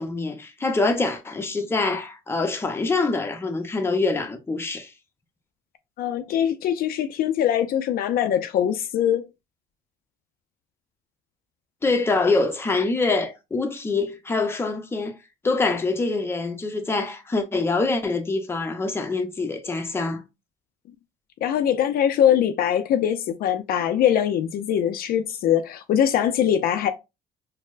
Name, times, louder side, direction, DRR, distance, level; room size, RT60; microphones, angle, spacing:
voice 1, 0.0-4.9 11.8-15.2 15.4-20.2, left 3 dB, 15° left, 0.6 m, -25 dB
voice 2, 6.0-9.3 21.4-26.9, left 10 dB, 60° left, 0.4 m, -22 dB
4.3 x 2.0 x 2.4 m
cardioid pair, 110°, 17 cm